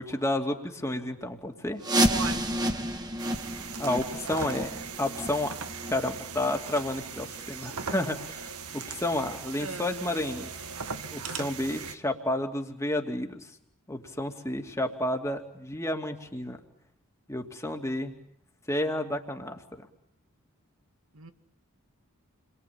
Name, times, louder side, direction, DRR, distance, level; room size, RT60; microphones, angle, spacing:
voice 1, 0.0-1.8 3.8-5.6 5.9-10.5 11.1-13.5 13.9-16.6 17.3-18.1 18.7-19.9, left 1 dB, 15° left, 2.6 m, -31 dB
sound 1, 1.8-7.4 7.7-7.9 8.4-8.5 9.1-9.2 9.7-9.8, right 1 dB, 20° right, 1.6 m, -30 dB
voice 2, 2.1-2.6 9.6-9.9 11.2-11.4 21.1-21.3, right 5 dB, 70° right, 2.2 m, -38 dB
sound 2, 3.2-12.0, right 5 dB, 85° right, 1.9 m, -39 dB
30.0 x 23.0 x 8.7 m
head